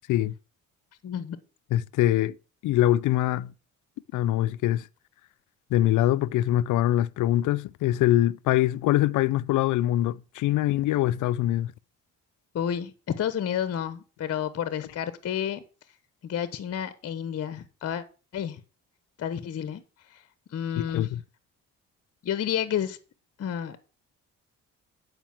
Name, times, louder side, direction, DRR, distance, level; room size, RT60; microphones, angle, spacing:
voice 1, 1.0-1.4 12.5-12.9 13.2-15.6 16.2-18.0 18.3-18.6 19.2-19.8 20.1-20.2 20.5-21.1 22.2-23.0 23.4-23.8, left 9 dB, 55° left, 1.0 m, -30 dB
voice 2, 1.7-2.4 2.6-3.5 4.1-4.9 5.7-11.7 20.8-21.2, left 14 dB, 80° left, 0.6 m, -23 dB
9.0 x 5.2 x 7.2 m
cardioid pair, 90°, 30 cm